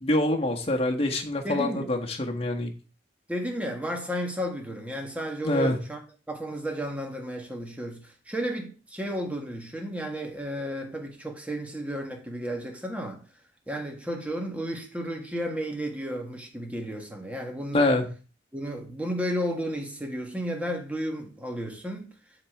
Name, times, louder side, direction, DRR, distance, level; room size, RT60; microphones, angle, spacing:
voice 1, 0.0-2.7 5.4-5.8 17.7-18.0, left 1 dB, 30° left, 1.4 m, -25 dB
voice 2, 1.4-1.9 3.3-6.0 6.3-13.2 13.7-17.9 18.5-22.1, equal, 5° right, 1.7 m, -33 dB
11.0 x 4.2 x 4.8 m
head